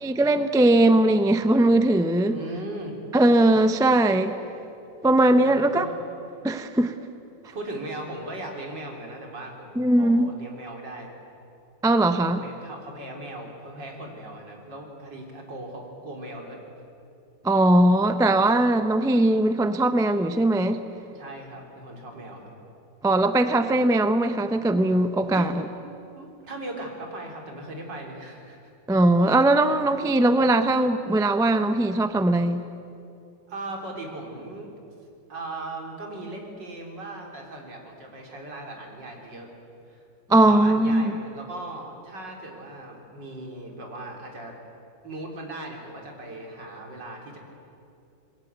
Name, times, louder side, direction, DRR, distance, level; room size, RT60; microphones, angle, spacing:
voice 1, 0.0-2.4 3.1-4.3 5.0-5.9 6.4-6.9 9.8-10.3 11.8-12.4 17.4-20.8 23.0-25.6 28.9-32.6 40.3-41.1, right 1 dB, 5° right, 9 dB, 0.5 m, -20 dB
voice 2, 2.3-2.9 5.4-5.9 7.4-11.1 12.3-16.6 21.1-22.5 25.2-25.5 26.1-28.7 33.5-34.7 35.3-39.5 39.9-40.0 40.3-44.6 45.0-47.4, right 2 dB, 75° right, 1 dB, 4.3 m, -38 dB
27.5 x 21.0 x 8.2 m, 2.6 s
omnidirectional pair, 1.9 m